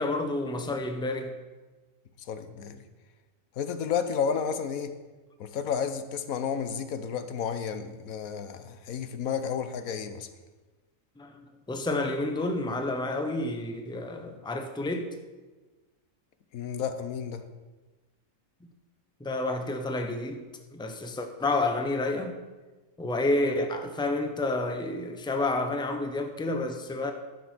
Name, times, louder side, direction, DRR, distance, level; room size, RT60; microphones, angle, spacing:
voice 1, 0.0-1.3 11.2-15.1 19.2-20.4 20.7-22.4 23.0-27.1, left 2 dB, 5° left, 6 dB, 0.7 m, -30 dB
voice 2, 2.2-2.8 3.6-4.9 5.4-10.3 16.5-17.4, left 7 dB, 90° left, 10 dB, 1.3 m, -32 dB
11.0 x 7.7 x 6.2 m, 1.2 s
omnidirectional pair, 1.4 m